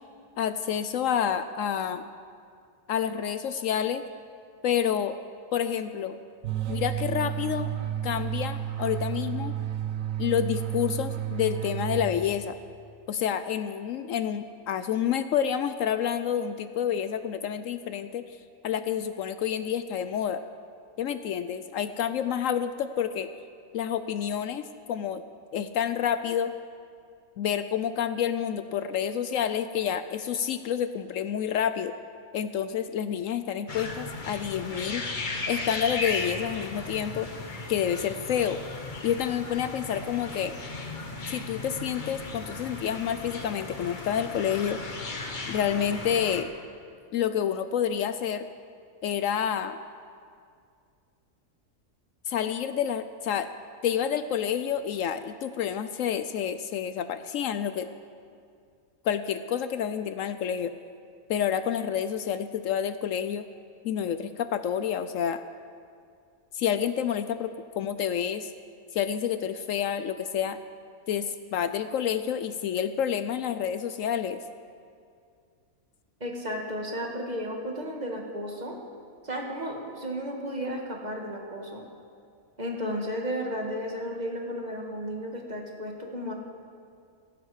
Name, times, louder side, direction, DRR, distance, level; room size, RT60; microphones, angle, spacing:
voice 1, 0.4-2.1 2.9-4.0 4.6-5.2 5.5-6.2 6.7-7.7 8.0-9.5 10.2-12.5 13.1-18.2 18.6-20.4 21.0-23.3 23.7-25.2 25.5-26.5 27.4-31.9 32.3-35.0 35.5-37.3 37.7-38.6 39.0-40.6 41.3-44.8 45.5-46.5 47.1-48.5 49.0-49.8 52.3-53.5 53.8-57.9 59.0-60.7 61.3-63.5 63.8-65.4 66.5-68.5 68.9-70.6 71.1-74.4, left 9 dB, 70° left, 11 dB, 0.9 m, -28 dB
sound 1, 6.4-12.6, right 11 dB, 70° right, 1.1 m, -32 dB
sound 2, 33.7-46.4, left 3 dB, 35° left, 1.2 m, -36 dB
voice 2, 76.2-78.8 79.2-81.8 82.6-86.3, equal, 30° right, 0 dB, 1.8 m, -33 dB
16.5 x 15.5 x 4.8 m, 2.3 s
omnidirectional pair, 1.5 m